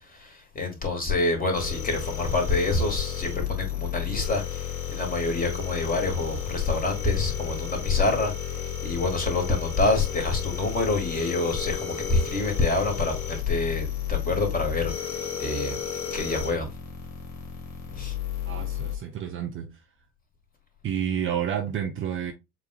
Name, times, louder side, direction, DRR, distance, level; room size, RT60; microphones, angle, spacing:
voice 1, 0.0-16.7 18.0-18.2, left 3 dB, 20° left, 1.8 m, -27 dB
sound 1, 1.5-19.0, left 9 dB, 40° left, 1.9 m, -33 dB
voice 2, 18.4-19.7 20.8-22.3, right 9 dB, 25° right, 0.7 m, -29 dB
7.2 x 2.5 x 2.4 m
figure-of-eight pair, 70°, 45 cm